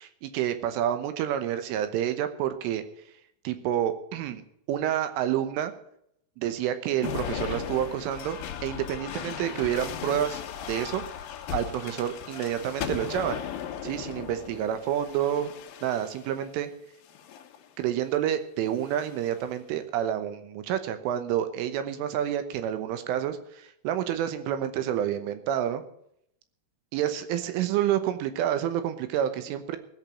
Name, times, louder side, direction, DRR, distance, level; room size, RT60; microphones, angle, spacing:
voice 1, 0.0-2.8 3.4-4.4 4.7-5.7 6.4-10.4 10.7-11.0 11.5-13.4 13.8-15.5 15.8-16.7 17.8-25.8 26.9-29.8, right 10 dB, 85° right, 9 dB, 3.6 m, -29 dB
sound 1, 7.0-16.4 17.1-17.6 18.7-19.4, left 9 dB, 75° left, 2.2 m, -37 dB
16.5 x 6.2 x 9.9 m, 0.73 s
omnidirectional pair, 5.7 m